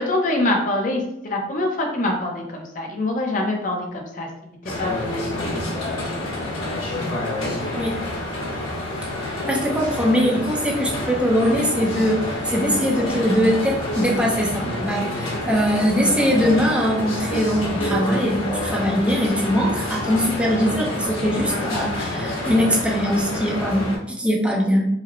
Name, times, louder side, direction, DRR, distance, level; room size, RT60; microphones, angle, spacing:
voice 1, 0.0-4.3 4.8-5.5, left 2 dB, 40° left, 1 dB, 0.6 m, -24 dB
sound 1, 4.6-24.0, left 1 dB, 85° left, 1.2 m, -28 dB
voice 2, 9.2-12.2 12.5-24.9, equal, 5° right, -2 dB, 0.6 m, -21 dB
4.8 x 2.1 x 3.0 m, 0.80 s
head